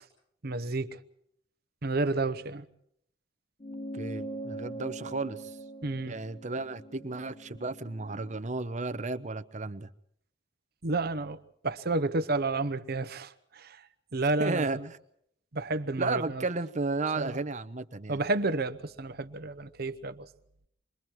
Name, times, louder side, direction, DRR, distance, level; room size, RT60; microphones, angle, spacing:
voice 1, 0.4-1.0 1.8-2.6 5.8-6.2 10.8-11.4 11.6-13.8 14.1-14.9 15.5-16.5 17.2-17.4 18.1-20.3, right 2 dB, 55° right, 1.0 m, -31 dB
sound 1, 3.6-8.4, right 1 dB, 30° left, 1.1 m, -42 dB
voice 2, 3.9-5.6 6.1-9.9 14.4-14.8 16.0-18.2, right 3 dB, 40° right, 0.9 m, -33 dB
27.5 x 22.5 x 4.6 m
head